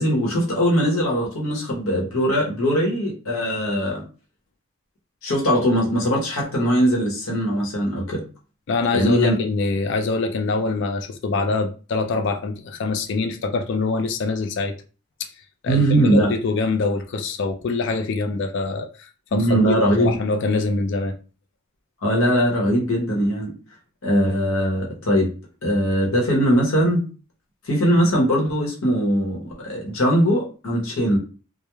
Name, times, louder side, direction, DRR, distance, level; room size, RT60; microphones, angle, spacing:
voice 1, 0.0-4.0 5.2-8.2 8.9-9.3 15.7-16.3 19.3-20.2 22.0-23.5 24.0-25.3 25.6-27.0 27.7-31.2, equal, 85° left, 0.9 m, -20 dB
voice 2, 8.7-14.7 15.6-21.1, left 3 dB, 60° left, 0.4 m, -24 dB
3.0 x 2.1 x 2.2 m
head